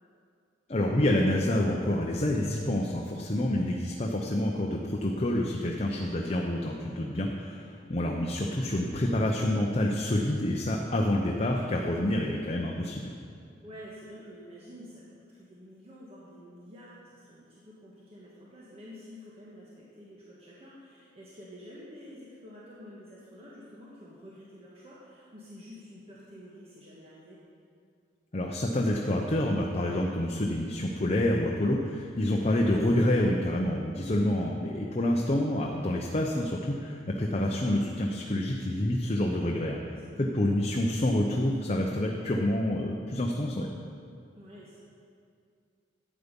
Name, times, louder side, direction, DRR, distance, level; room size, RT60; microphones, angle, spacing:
voice 1, 0.7-13.1 28.3-43.7, left 1 dB, 35° left, 0 dB, 0.7 m, -28 dB
voice 2, 6.8-7.1 10.8-10.9 13.6-27.4 34.4-34.6 39.9-40.2 44.3-44.8, equal, 35° right, -6 dB, 1.5 m, -49 dB
12.0 x 8.2 x 5.3 m, 2.3 s
head